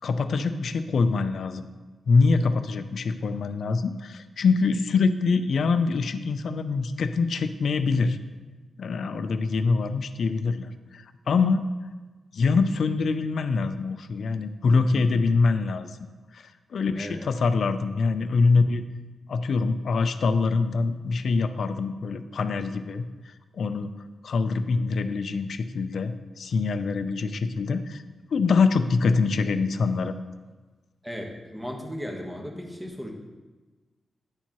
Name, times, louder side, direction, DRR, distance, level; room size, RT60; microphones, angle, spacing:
voice 1, 0.0-1.7 2.1-8.2 8.8-11.7 12.3-15.9 16.3-18.8 19.3-23.1 23.5-23.9 24.2-28.0 28.3-30.1, left 4 dB, 70° left, 10 dB, 0.4 m, -24 dB
voice 2, 14.7-15.3 16.9-17.2 31.0-33.1, equal, 10° right, 1 dB, 1.1 m, -36 dB
10.5 x 4.4 x 2.9 m, 1.3 s
cardioid pair, 85°, 0 cm